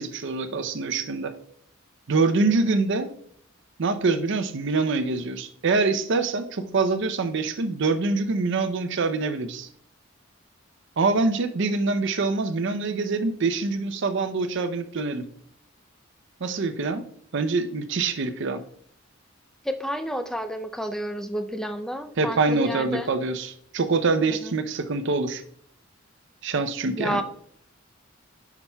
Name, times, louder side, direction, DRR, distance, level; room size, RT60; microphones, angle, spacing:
voice 1, 0.0-1.3 2.1-3.1 3.8-9.7 11.0-15.2 16.4-17.0 17.3-18.6 22.2-25.4 26.4-27.2, right 3 dB, 60° right, 10 dB, 0.6 m, -25 dB
voice 2, 19.6-23.1 24.4-24.5 27.0-27.2, equal, 5° left, 7 dB, 0.4 m, -30 dB
9.6 x 5.9 x 2.2 m, 0.65 s
head